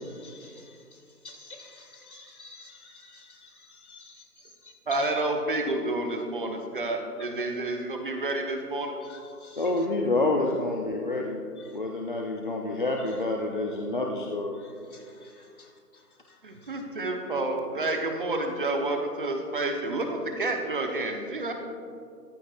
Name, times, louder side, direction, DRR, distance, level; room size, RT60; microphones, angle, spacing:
voice 1, 1.2-3.2 3.9-4.1 9.4-9.6, left 2 dB, 60° left, 0 dB, 3.1 m, -47 dB
voice 2, 4.9-9.0 16.4-21.5, right 2 dB, 35° right, 3 dB, 1.0 m, -29 dB
voice 3, 9.6-11.4 11.7-14.6, left 2 dB, 35° left, 0 dB, 0.6 m, -28 dB
15.5 x 14.0 x 2.5 m, 2.4 s
figure-of-eight pair, 155°, 48 cm